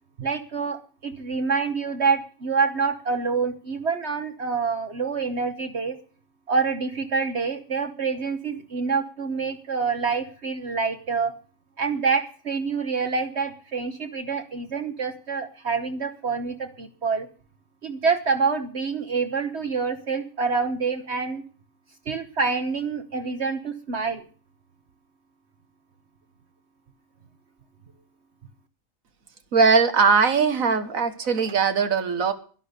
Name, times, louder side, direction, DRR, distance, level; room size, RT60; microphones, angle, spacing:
voice 1, 0.2-6.0 6.5-11.3 11.8-17.3 17.8-21.4 22.1-24.2, right 5 dB, 55° right, 8 dB, 1.4 m, -26 dB
voice 2, 29.5-32.3, right 5 dB, 80° right, 10 dB, 1.8 m, -20 dB
12.0 x 11.5 x 6.6 m, 0.41 s
omnidirectional pair, 1.4 m